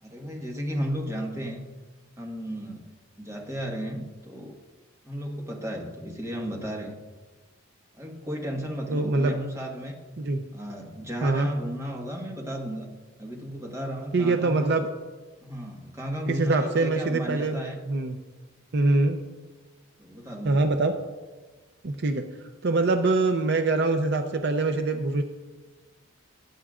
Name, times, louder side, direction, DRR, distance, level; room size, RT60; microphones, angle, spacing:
voice 1, 0.0-1.6 2.2-2.9 3.2-4.6 5.0-7.0 7.9-9.9 10.5-12.9 13.2-14.7 15.4-17.8 20.0-20.8, equal, 15° right, -1 dB, 1.4 m, -34 dB
voice 2, 8.9-9.3 10.2-10.4 11.2-11.5 14.1-14.9 16.3-17.6 17.9-18.2 18.7-19.2 20.4-20.9 21.8-22.2 22.6-25.2, right 3 dB, 55° right, 6 dB, 0.6 m, -24 dB
18.0 x 9.2 x 2.5 m, 1.3 s
head